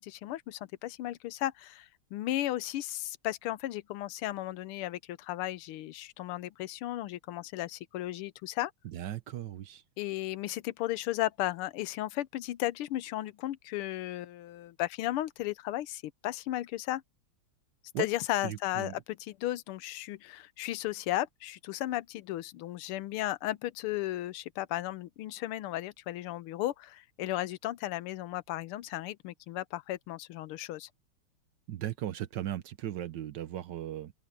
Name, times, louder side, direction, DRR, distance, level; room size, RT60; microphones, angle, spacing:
voice 1, 0.0-8.7 10.0-17.0 18.0-30.9, left 15 dB, 90° left, 1.6 m, -35 dB
voice 2, 8.9-9.8 17.9-18.1 18.4-19.0 31.7-34.1, right 12 dB, 65° right, 1.3 m, -37 dB
open air
omnidirectional pair, 2.3 m